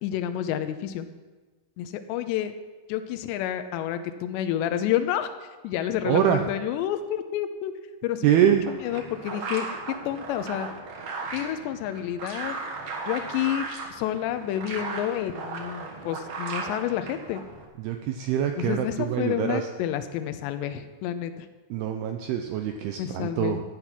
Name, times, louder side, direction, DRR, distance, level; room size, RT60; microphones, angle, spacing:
voice 1, 0.0-1.1 1.8-2.5 2.9-5.3 5.6-7.7 8.0-10.7 11.3-12.6 13.1-17.4 18.6-21.5 23.0-23.6, left 11 dB, 80° left, 9 dB, 2.8 m, -29 dB
voice 2, 6.1-6.4 8.2-8.7 17.8-19.7 21.7-23.6, right 10 dB, 85° right, 5 dB, 2.2 m, -24 dB
sound 1, 8.4-17.6, right 4 dB, 60° right, 1.9 m, -36 dB
13.0 x 9.9 x 6.0 m, 1.3 s
omnidirectional pair, 5.4 m